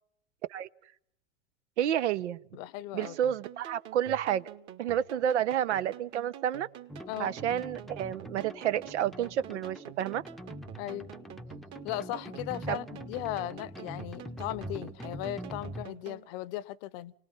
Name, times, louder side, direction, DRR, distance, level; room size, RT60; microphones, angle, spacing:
voice 1, 1.8-2.4 2.9-4.4 4.8-6.7 7.2-10.2 12.7-12.8, right 10 dB, 70° right, 0.9 m, -30 dB
voice 2, 2.5-3.2 7.1-7.4 10.8-11.1 11.8-17.1, left 14 dB, 55° left, 0.9 m, -37 dB
sound 1, 3.0-16.3, right 11 dB, 45° right, 2.5 m, -48 dB
sound 2, 6.9-15.9, equal, ahead, 0.8 m, -44 dB
28.5 x 19.5 x 5.5 m
hypercardioid pair, 90°, 36 cm